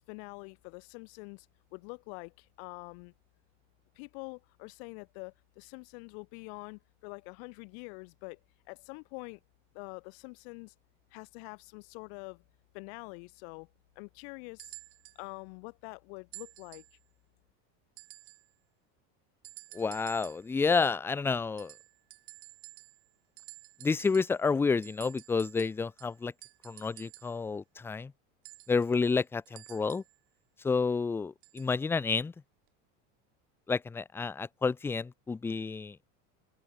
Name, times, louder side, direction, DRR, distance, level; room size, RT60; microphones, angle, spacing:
voice 1, 0.0-1.5 1.7-3.1 3.9-8.4 8.7-9.4 9.7-10.7 11.1-12.4 12.7-13.7 13.9-14.7 15.1-16.8, left 39 dB, 60° left, 3.1 m, -45 dB
sound 1, 14.6-15.2 16.3-17.0 18.0-18.5 19.4-20.5 21.6-23.1 23.4-24.4 24.8-27.4 28.4-30.2 31.4-31.8 32.7-32.8, right 29 dB, 65° right, 3.9 m, -51 dB
voice 2, 19.7-21.7 23.8-26.3 26.6-28.1 28.7-30.0 30.6-32.3 33.7-36.0, left 4 dB, 5° left, 0.5 m, -30 dB
open air
cardioid pair, 165°, 36 cm